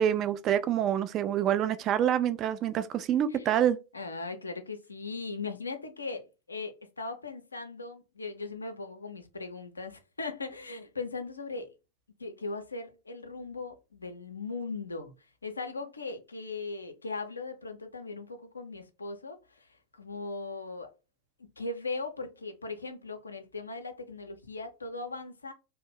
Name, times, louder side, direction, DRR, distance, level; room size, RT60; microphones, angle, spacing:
voice 1, 0.0-3.8, right 10 dB, 35° right, 0.3 m, -26 dB
voice 2, 3.9-6.2 6.5-11.7 12.2-20.9 21.4-25.5, left 3 dB, 80° left, 0.5 m, -39 dB
2.5 x 2.1 x 3.8 m
figure-of-eight pair, 90°, 0 cm